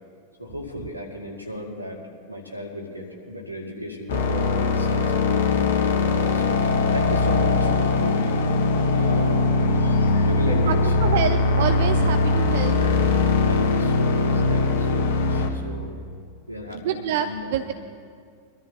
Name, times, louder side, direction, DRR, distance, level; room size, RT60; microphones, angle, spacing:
voice 1, 0.4-2.0 2.3-5.4 6.3-8.4 8.9-11.3 12.6-16.0 16.5-17.7, left 1 dB, 90° right, 0 dB, 2.0 m, -35 dB
sound 1, 4.1-15.5, left 3 dB, 60° left, 1.4 m, -21 dB
voice 2, 11.0-12.8 16.8-17.7, right 9 dB, 55° right, 9 dB, 0.5 m, -26 dB
23.5 x 13.0 x 2.7 m, 2.2 s
figure-of-eight pair, 90°, 0 cm